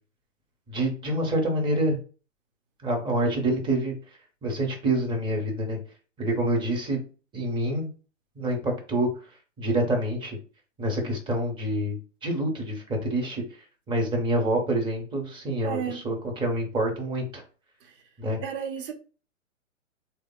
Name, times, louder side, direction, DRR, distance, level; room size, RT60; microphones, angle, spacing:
voice 1, 0.7-2.0 2.8-3.9 4.4-5.8 6.2-7.0 7.3-7.9 8.4-9.1 9.6-10.4 10.8-13.4 13.9-17.4 18.2-18.4, right 1 dB, 10° right, 0.8 m, -27 dB
voice 2, 15.6-16.0 18.4-18.9, right 8 dB, 45° right, 0.9 m, -32 dB
3.4 x 2.2 x 3.7 m
hypercardioid pair, 120°, 39 cm